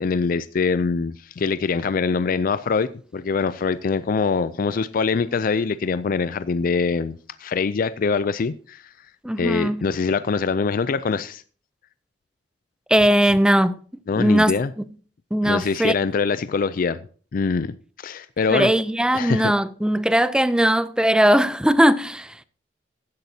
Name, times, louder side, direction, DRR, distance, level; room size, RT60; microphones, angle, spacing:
voice 1, 0.0-8.9 9.4-11.4 14.1-14.7 15.4-17.0 17.3-18.7 19.1-19.5, left 5 dB, 50° left, 0.4 m, -24 dB
voice 2, 9.2-9.9 12.9-13.7 14.2-14.5 14.8-14.9 15.3-15.9 18.5-22.4, right 1 dB, 5° right, 0.5 m, -19 dB
15.0 x 10.5 x 2.8 m
head